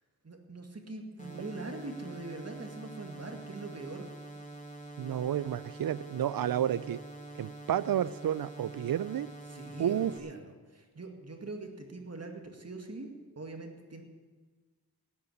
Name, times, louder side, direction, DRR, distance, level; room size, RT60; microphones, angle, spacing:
voice 1, 0.2-4.1 9.5-14.0, right 3 dB, 40° right, 4 dB, 2.1 m, -43 dB
sound 1, 1.2-10.2, right 2 dB, 20° left, 2.7 m, -46 dB
voice 2, 5.0-7.0 7.4-9.3 9.8-10.1, right 10 dB, 65° right, 19 dB, 0.5 m, -31 dB
13.5 x 7.6 x 9.9 m, 1.4 s
cardioid pair, 50°, 37 cm